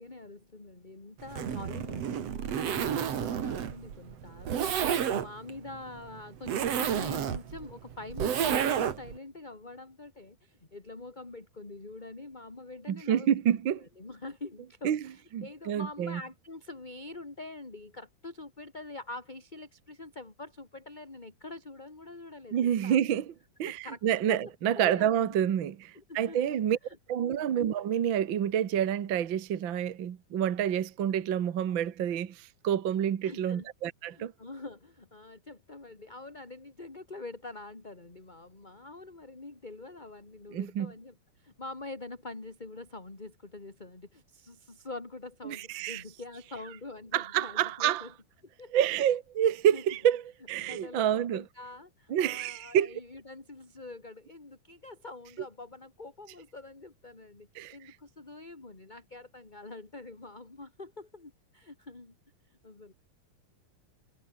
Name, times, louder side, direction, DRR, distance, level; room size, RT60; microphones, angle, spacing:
voice 1, 0.0-13.3 13.8-23.0 23.6-24.0 24.3-25.5 25.9-26.6 26.9-27.0 27.2-27.5 33.2-33.7 34.1-48.1 48.6-48.8 49.7-49.8 50.6-62.1 62.5-62.9, left 2 dB, 15° left, 2.1 m, -45 dB
Zipper (clothing), 1.2-9.2, right 8 dB, 50° right, 2.5 m, -31 dB
voice 2, 12.9-13.9 14.8-15.0 15.3-16.2 22.5-23.3 23.6-26.8 27.1-34.3 40.5-40.9 45.4-46.0 47.1-48.1 48.7-51.4 52.1-52.9 57.5-57.8, right 10 dB, 70° right, 1.1 m, -28 dB
omnidirectional pair, 4.3 m